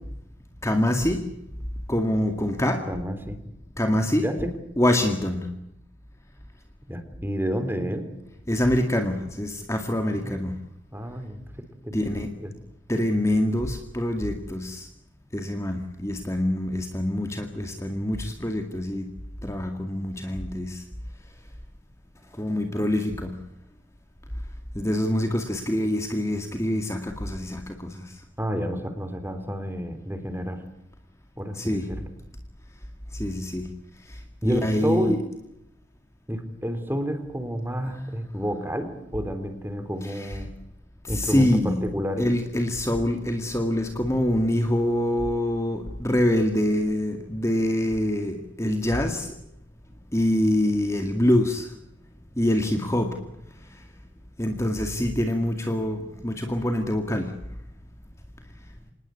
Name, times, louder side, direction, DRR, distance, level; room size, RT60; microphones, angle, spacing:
voice 1, 0.6-1.2 1.9-2.8 3.8-4.5 4.8-5.5 8.5-10.5 11.9-12.3 12.9-14.9 15.3-19.1 19.4-20.8 22.3-23.3 24.7-28.1 31.5-31.9 33.1-33.7 34.1-35.2 37.9-38.0 40.0-40.4 41.0-41.9 42.2-49.3 50.1-51.7 52.4-53.2 54.4-57.3, left 1 dB, 15° left, 5 dB, 2.1 m, -25 dB
voice 2, 2.9-3.4 4.2-4.5 6.9-8.1 10.2-10.4 10.9-11.4 11.8-12.0 12.4-12.5 28.4-30.6 31.4-32.1 34.4-35.2 36.3-40.5 41.1-42.3, equal, 10° right, 9 dB, 3.4 m, -30 dB
27.0 x 20.0 x 8.2 m, 0.81 s
head